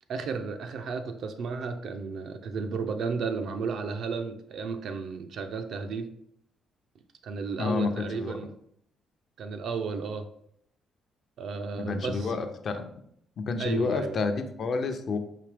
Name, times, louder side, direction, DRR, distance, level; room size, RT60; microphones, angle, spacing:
voice 1, 0.1-6.1 7.2-8.5 9.4-10.3 11.4-12.3 13.6-14.2, right 5 dB, 70° right, 7 dB, 0.5 m, -33 dB
voice 2, 7.6-8.4 11.8-12.8 13.4-15.2, left 4 dB, 55° left, 7 dB, 0.5 m, -29 dB
4.9 x 2.8 x 3.4 m, 0.71 s
cardioid pair, 90°, 0 cm